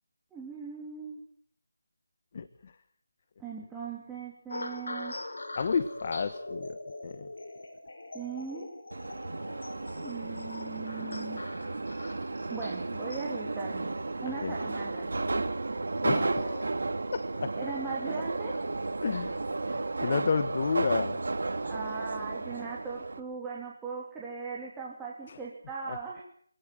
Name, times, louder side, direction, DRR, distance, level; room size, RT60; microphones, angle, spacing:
voice 1, 0.3-1.2 3.4-5.1 8.1-8.7 10.0-11.4 12.5-14.0 14.2-15.1 17.5-18.6 21.6-26.2, right 5 dB, 5° right, -5 dB, 3.2 m, -39 dB
voice 2, 2.3-2.7 5.5-6.8 7.0-7.3 14.4-14.5 16.0-16.7 17.1-17.5 19.0-19.4 19.7-21.2 25.3-25.4 25.9-26.2, left 5 dB, 40° left, 12 dB, 1.2 m, -31 dB
sound 1, 4.5-21.0 21.6-21.9, left 2 dB, 75° left, 4.8 m, -44 dB
Subway metro underground, 8.9-23.2, right 3 dB, 70° right, 2.5 m, -33 dB
25.5 x 17.5 x 7.8 m, 0.62 s
figure-of-eight pair, 165°, 0 cm